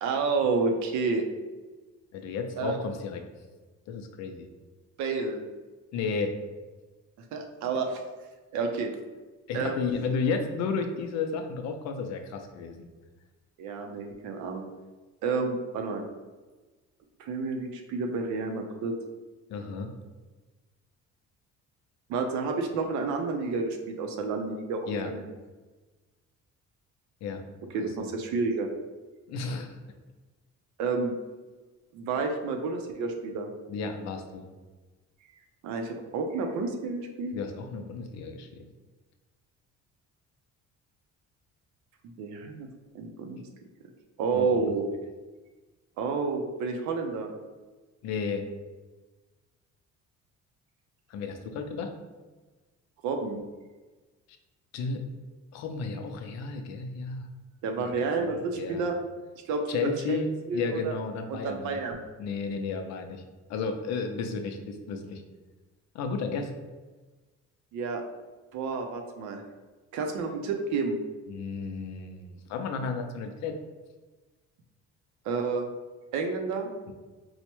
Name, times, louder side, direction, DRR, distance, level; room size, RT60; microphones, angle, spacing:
voice 1, 0.0-1.2 2.6-2.8 5.0-5.4 7.3-8.0 8.5-8.9 9.5-9.8 13.6-14.7 15.2-16.0 17.2-18.9 22.1-25.3 27.7-28.7 30.8-31.1 31.9-33.5 35.6-37.3 42.2-42.7 42.9-43.4 44.2-44.9 46.0-47.3 53.0-53.4 57.6-58.9 59.5-60.2 60.5-60.9 61.3-62.0 67.7-68.0 68.5-69.4 69.9-71.0 75.2-75.7 76.1-76.7, right 4 dB, 75° right, 3 dB, 0.5 m, -30 dB
voice 2, 2.1-3.2 3.9-4.5 5.9-6.3 9.5-12.9 19.5-19.9 24.9-25.1 27.2-27.4 28.0-28.1 29.3-29.8 33.7-34.5 37.3-38.6 44.3-44.7 48.0-48.4 51.1-51.9 54.7-55.0 55.5-57.3 57.8-57.9 58.2-58.8 59.7-61.8 62.2-63.2 63.5-65.2 65.9-66.5 71.3-73.5 76.9-77.0, left 4 dB, 65° left, 5 dB, 0.5 m, -33 dB
4.5 x 2.1 x 2.9 m, 1.3 s
cardioid pair, 165°, 29 cm